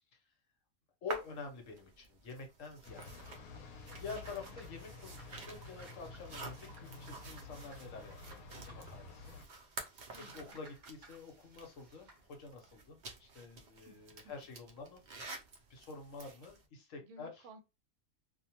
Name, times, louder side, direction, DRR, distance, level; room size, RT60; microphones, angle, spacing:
voice 1, 1.0-3.3 4.0-9.7 10.1-15.0 15.7-17.3, left 4 dB, 65° left, 3 dB, 1.1 m, -48 dB
sound 1, 1.1-16.7, right 3 dB, 85° right, 0.4 m, -51 dB
sound 2, 2.8-9.5, left 3 dB, 80° left, 1.0 m, -51 dB
sound 3, 3.5-12.2, right 3 dB, 40° right, 0.7 m, -61 dB
voice 2, 4.1-4.6 10.1-10.6 13.8-14.3 15.5-15.7 17.0-17.6, right 2 dB, 65° right, 5 dB, 0.9 m, -57 dB
2.6 x 2.1 x 2.8 m, 0.26 s
omnidirectional pair, 1.5 m